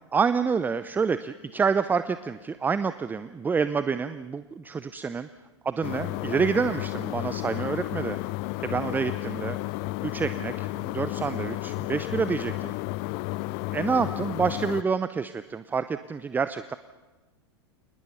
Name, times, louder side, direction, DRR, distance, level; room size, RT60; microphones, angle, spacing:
voice 1, 0.1-5.3 5.6-8.2 8.6-9.6 10.0-12.8 13.7-16.8, right 5 dB, 15° right, 13 dB, 0.6 m, -28 dB
sound 1, 5.8-14.8, left 20 dB, 45° left, 0.6 m, -32 dB
28.0 x 20.0 x 5.8 m, 1.2 s
figure-of-eight pair, 95°, 14 cm